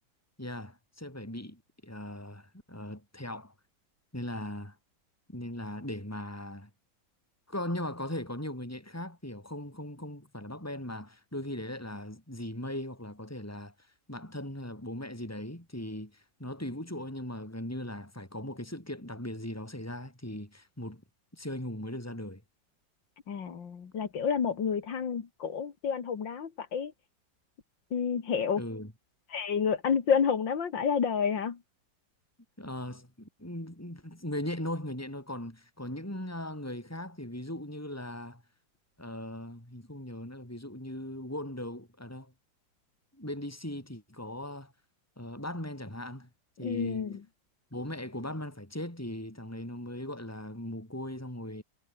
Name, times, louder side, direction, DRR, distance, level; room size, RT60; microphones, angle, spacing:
voice 1, 0.4-3.5 4.1-4.8 5.3-6.7 7.5-21.0 21.3-22.4 28.6-28.9 32.6-38.4 39.0-42.3 43.1-44.7 45.2-46.3 46.6-47.1 47.7-51.6, left 1 dB, 5° left, 5.7 m, -39 dB
voice 2, 23.3-26.9 27.9-28.6 29.3-31.6 46.6-47.2, left 6 dB, 75° left, 2.7 m, -29 dB
omnidirectional pair, 2.0 m